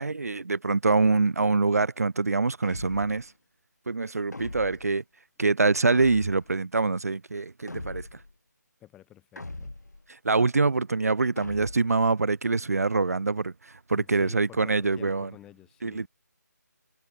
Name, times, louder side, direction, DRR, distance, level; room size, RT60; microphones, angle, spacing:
voice 1, 0.0-3.3 3.9-5.0 5.4-8.2 10.1-15.3 15.8-16.1, right 3 dB, 60° right, 0.5 m, -25 dB
sound 1, 2.6-3.3 4.3-5.0 5.9-6.6 7.7-8.3 9.4-10.0 11.4-12.0, left 2 dB, 70° left, 2.9 m, -40 dB
voice 2, 8.8-9.7 13.9-16.1, left 13 dB, 5° left, 0.9 m, -50 dB
figure-of-eight pair, 150°, 9 cm